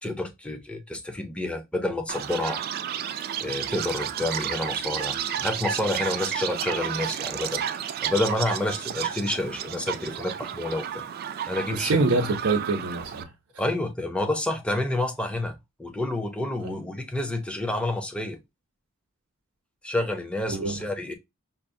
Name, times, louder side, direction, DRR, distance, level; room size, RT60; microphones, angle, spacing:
voice 1, 0.0-2.6 3.4-7.6 8.0-11.0 11.4-11.9 13.6-18.4 19.8-21.1, left 1 dB, 5° left, 0.5 m, -29 dB
Chirp tweet, 2.1-13.2, right 9 dB, 45° right, 0.3 m, -32 dB
voice 2, 11.7-13.3 15.9-16.0 16.6-16.8 20.5-20.8, right 3 dB, 85° right, 0.6 m, -25 dB
5.7 x 2.0 x 2.6 m
head